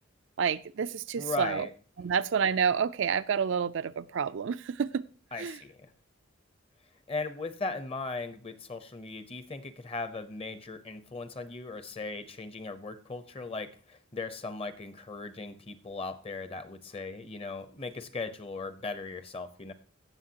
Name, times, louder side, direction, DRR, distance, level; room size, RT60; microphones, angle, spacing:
voice 1, 0.4-1.7 2.0-5.0 5.4-5.6, right 6 dB, 65° right, 0.4 m, -29 dB
voice 2, 1.2-1.7 5.3-5.9 7.1-19.7, left 3 dB, 30° left, 0.9 m, -38 dB
17.0 x 6.6 x 2.9 m
head